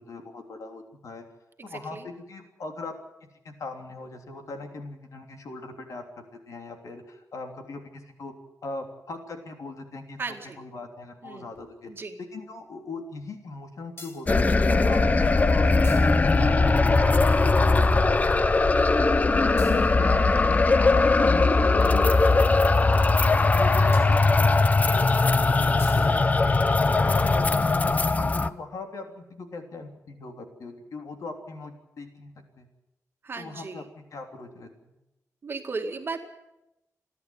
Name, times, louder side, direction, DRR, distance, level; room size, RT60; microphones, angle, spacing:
voice 1, 0.1-1.2 1.6-2.9 3.4-8.3 8.6-10.2 10.6-11.9 12.2-18.8 19.3-25.0 25.5-26.4 26.9-32.3 32.6-32.7 33.4-35.0, left 3 dB, 70° left, 4 dB, 3.3 m, -39 dB
voice 2, 1.6-2.1 10.2-10.6 11.2-11.5 11.9-12.2 23.7-24.0 33.2-33.8 35.4-36.2, right 4 dB, 40° right, 4 dB, 2.2 m, -36 dB
sound 1, 11.6-11.7 14.0-14.6 15.7-17.0 19.6-21.3 23.9-24.9 25.8-26.1 26.4-27.8, left 2 dB, 45° left, 3.4 m, -39 dB
sound 2, 14.3-28.5, left 3 dB, 25° left, 0.6 m, -20 dB
29.5 x 11.0 x 9.4 m, 0.93 s
wide cardioid pair, 170°, 6 cm